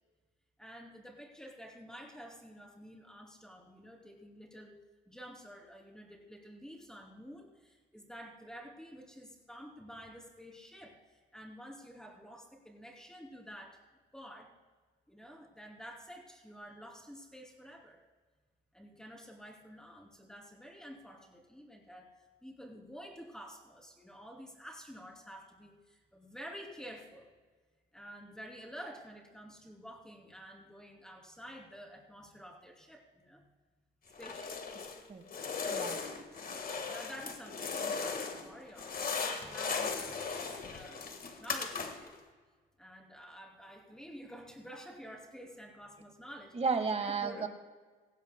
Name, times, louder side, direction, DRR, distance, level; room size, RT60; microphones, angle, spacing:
voice 1, 0.6-4.8 5.1-13.8 14.1-14.5 15.1-18.0 18.7-22.1 22.4-27.3 27.9-33.5 34.2-34.6 36.3-41.1 41.4-42.1 42.8-46.6 46.9-47.5, equal, 5° left, 0 dB, 2.8 m, -50 dB
sound 1, 34.1-35.0 35.3-38.5 38.7-42.2, left 5 dB, 45° left, 1.6 m, -37 dB
voice 2, 46.5-47.5, right 5 dB, 30° right, 7 dB, 1.5 m, -32 dB
17.5 x 15.5 x 2.2 m, 1.4 s
cardioid pair, 90°, 20 cm